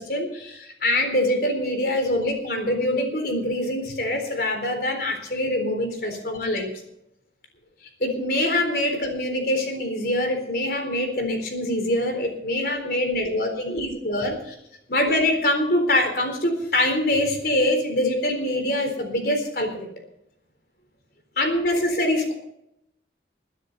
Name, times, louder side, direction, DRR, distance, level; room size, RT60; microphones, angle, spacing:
voice 1, 0.0-6.7 8.0-14.5 14.9-19.9 21.4-22.3, left 1 dB, 60° left, 5 dB, 3.9 m, -24 dB
22.0 x 10.0 x 4.2 m, 0.78 s
head